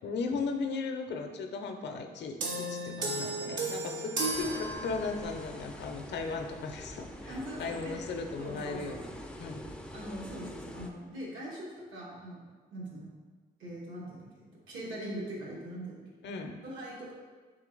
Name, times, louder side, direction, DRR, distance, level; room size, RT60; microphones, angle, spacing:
voice 1, 0.0-9.1 9.4-9.6 16.2-16.6, left 4 dB, 60° left, 5 dB, 0.5 m, -37 dB
sound 1, 2.4-5.4, right 2 dB, 65° right, 0.8 m, -34 dB
sound 2, 4.3-10.9, left 1 dB, 5° left, 0.3 m, -45 dB
voice 2, 7.2-8.0 8.4-9.2 9.9-12.4 12.7-13.1 13.6-16.0 16.6-17.1, right 1 dB, 80° right, -5 dB, 1.2 m, -42 dB
3.7 x 2.9 x 3.8 m, 1.4 s
cardioid pair, 90°, 20 cm